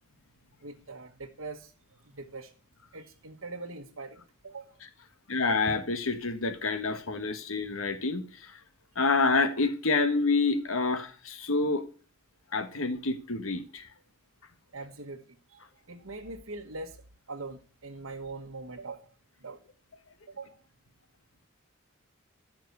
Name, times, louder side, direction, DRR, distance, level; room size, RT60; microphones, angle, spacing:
voice 1, 0.6-1.7 2.0-2.5 2.9-4.8 14.7-15.2 15.5-17.0 17.3-19.1 19.4-19.6 20.3-20.6, right 3 dB, 75° right, 1.4 m, -42 dB
voice 2, 5.3-8.6 8.9-11.9 12.5-13.9, left 3 dB, 85° left, 1.5 m, -28 dB
14.5 x 5.9 x 8.4 m
head